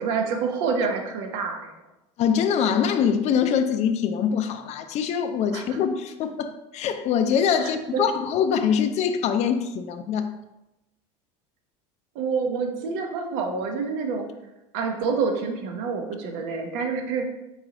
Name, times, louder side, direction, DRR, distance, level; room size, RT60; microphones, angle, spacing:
voice 1, 0.0-1.7 5.5-5.6 7.6-8.0 12.1-14.3 14.7-17.3, right 5 dB, 75° right, 0.8 m, -27 dB
voice 2, 2.2-10.3, left 7 dB, 45° left, 0.4 m, -24 dB
4.1 x 3.9 x 2.9 m
supercardioid pair, 95°, 15 cm